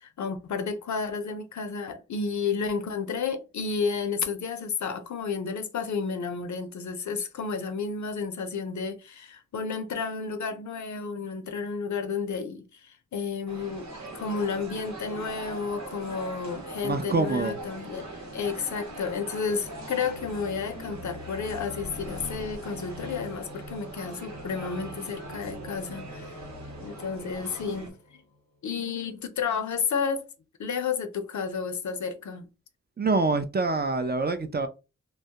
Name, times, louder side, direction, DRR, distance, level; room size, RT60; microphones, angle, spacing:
voice 1, 0.0-13.9 14.1-26.4 26.8-28.0 28.6-30.3 30.6-32.5, left 5 dB, 70° left, 0.5 m, -31 dB
sound 1, 13.5-27.9, right 2 dB, 65° right, 0.9 m, -41 dB
voice 2, 16.8-17.6 33.0-34.7, right 3 dB, 35° right, 0.4 m, -26 dB
sound 2, 17.9-28.6, left 1 dB, 85° right, 1.2 m, -46 dB
2.2 x 2.0 x 2.7 m
cardioid pair, 45°, 30 cm